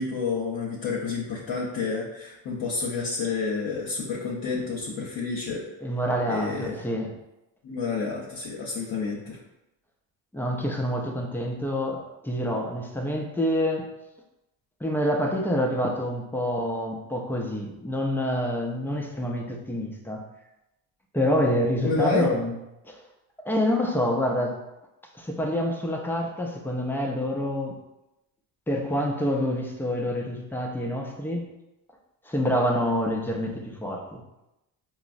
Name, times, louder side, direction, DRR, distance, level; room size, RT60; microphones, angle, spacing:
voice 1, 0.0-5.6 6.3-6.8 7.6-9.4 21.8-22.3, left 4 dB, 60° left, -4 dB, 0.8 m, -29 dB
voice 2, 5.8-7.1 10.3-13.9 14.8-20.2 21.1-22.5 22.9-23.0 23.4-24.6 25.1-27.8 28.7-31.5 32.2-34.2, equal, 5° left, 0 dB, 0.4 m, -27 dB
4.5 x 2.0 x 2.5 m, 0.93 s
cardioid pair, 100°, 42 cm